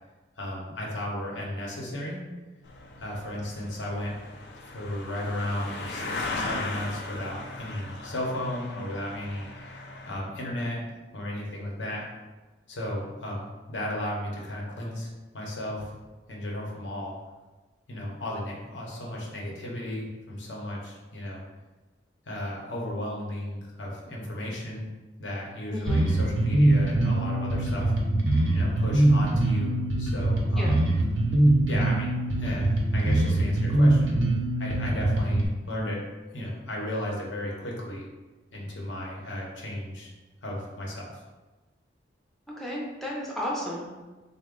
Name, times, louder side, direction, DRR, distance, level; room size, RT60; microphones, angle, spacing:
voice 1, 0.4-2.2 3.0-4.1 4.7-9.5 10.1-10.8 11.1-12.0 12.7-15.9 16.3-17.1 17.9-21.4 22.3-24.9 25.2-27.9 28.5-30.8 31.7-34.2 34.6-36.0 36.3-38.1 38.5-40.1 40.4-41.2, left 1 dB, 85° left, -2 dB, 0.8 m, -34 dB
sound 1, 2.6-10.2, left 2 dB, 65° left, 0.4 m, -38 dB
voice 2, 25.7-26.0 30.6-30.7 42.6-43.8, left 1 dB, ahead, -4 dB, 0.4 m, -33 dB
Bass guitar, 25.9-35.5, right 1 dB, 85° right, 0.6 m, -23 dB
3.8 x 2.1 x 3.6 m, 1.2 s
head